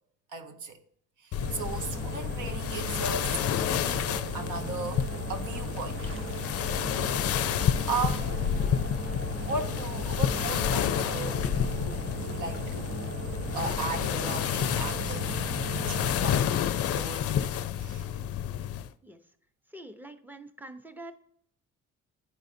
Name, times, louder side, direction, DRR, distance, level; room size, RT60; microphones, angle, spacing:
voice 1, 0.3-0.8 1.2-4.1 4.3-6.0 7.9-8.4 9.4-13.2 13.5-15.4 15.7-17.3 17.8-18.1, right 4 dB, 80° right, 1.0 m, -37 dB
sound 1, 1.3-18.9, left 9 dB, 50° left, 0.4 m, -30 dB
sound 2, 1.4-16.1, right 4 dB, 45° right, 0.8 m, -38 dB
voice 2, 19.7-21.1, right 1 dB, 5° right, 0.7 m, -45 dB
11.0 x 4.0 x 2.6 m
cardioid pair, 90°, 30 cm